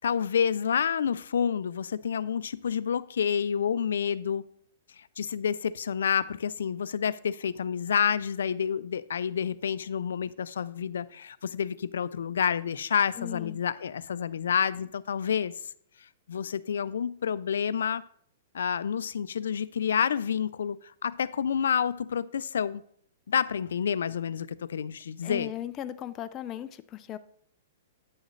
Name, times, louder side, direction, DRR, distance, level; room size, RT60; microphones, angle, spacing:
voice 1, 0.0-4.4 5.0-15.5 16.3-18.0 18.5-22.8 23.3-25.5, left 7 dB, 85° left, 0.4 m, -29 dB
voice 2, 13.2-13.6 25.2-27.2, left 11 dB, 25° left, 0.4 m, -37 dB
9.3 x 6.4 x 3.2 m
hypercardioid pair, 150°, 0 cm